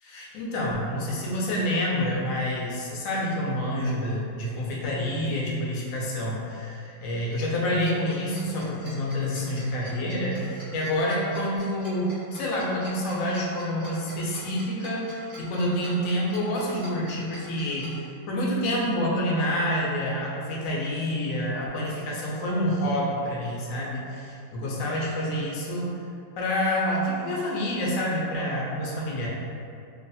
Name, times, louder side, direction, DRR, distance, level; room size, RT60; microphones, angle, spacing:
voice 1, 0.0-18.0 18.3-26.1 26.4-29.3, equal, 75° left, -4 dB, 0.7 m, -28 dB
Tick-tock, 7.8-17.9, right 1 dB, 25° right, 0.6 m, -46 dB
3.0 x 2.1 x 2.6 m, 2.5 s
omnidirectional pair, 1.9 m